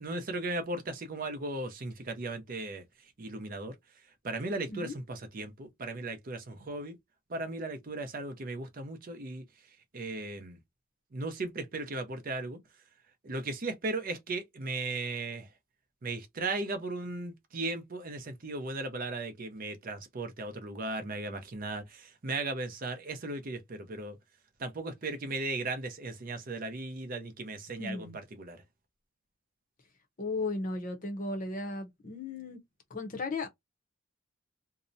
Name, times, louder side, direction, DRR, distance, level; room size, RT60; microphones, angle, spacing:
voice 1, 0.0-2.8 3.2-3.7 4.2-7.0 7.3-9.4 9.9-10.6 11.1-12.6 13.2-15.5 16.0-24.2 24.6-28.6, right 2 dB, 45° right, 0.6 m, -36 dB
voice 2, 27.8-28.2 30.2-32.6 32.9-33.5, left 3 dB, 40° left, 0.7 m, -35 dB
2.7 x 2.0 x 2.5 m
head